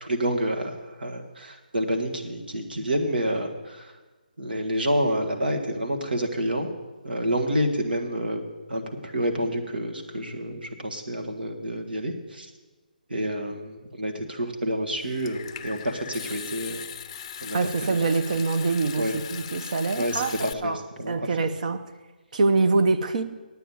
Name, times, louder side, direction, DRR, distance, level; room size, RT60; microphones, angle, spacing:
voice 1, 0.0-0.7 1.0-3.9 4.4-6.7 7.0-8.4 8.7-12.5 13.1-16.8 17.4-18.0 19.0-19.2 20.0-20.7 21.0-21.2, equal, 85° right, 1.7 m, -28 dB
Water tap faucet / Sink (filling or washing) / Trickle dribble, 15.0-20.5, left 9 dB, 35° left, 0.5 m, -39 dB
voice 2, 17.5-21.8 22.3-23.2, right 3 dB, 55° right, 0.8 m, -25 dB
9.1 x 9.1 x 7.0 m
figure-of-eight pair, 155°, 5 cm